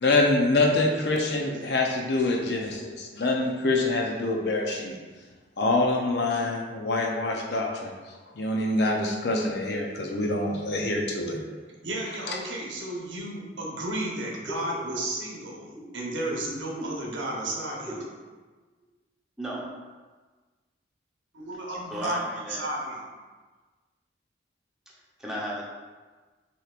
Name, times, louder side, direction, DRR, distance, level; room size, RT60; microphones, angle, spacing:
voice 1, 0.0-5.0 5.6-7.9 8.4-11.4 12.3-12.4, left 2 dB, 65° left, 1 dB, 0.6 m, -25 dB
voice 2, 11.8-18.0 21.3-22.2 22.6-23.1, right 1 dB, 85° right, -2 dB, 1.0 m, -33 dB
voice 3, 21.9-22.6 24.9-25.6, equal, 5° right, -6 dB, 0.8 m, -34 dB
6.5 x 3.0 x 2.4 m, 1.3 s
head